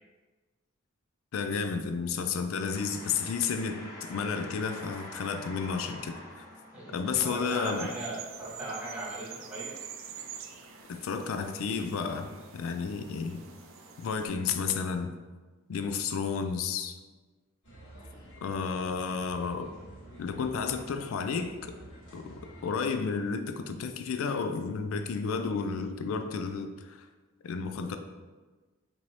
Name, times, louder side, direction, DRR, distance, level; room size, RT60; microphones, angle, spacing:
voice 1, 1.3-6.4 6.9-7.9 10.9-13.4 14.0-15.1 15.7-17.0 18.4-19.7 20.2-21.7 22.1-27.0 27.4-28.0, left 5 dB, 75° left, 7 dB, 0.3 m, -32 dB
sound 1, 2.7-14.8, equal, 15° left, 0.9 m, -49 dB
voice 2, 6.7-9.7, right 1 dB, 5° right, -9 dB, 1.4 m, -38 dB
sound 2, 7.4-14.3, right 8 dB, 65° right, 0.3 m, -46 dB
sound 3, 17.6-22.8, right 1 dB, 60° left, 1.4 m, -50 dB
4.5 x 2.7 x 2.8 m, 1.3 s
head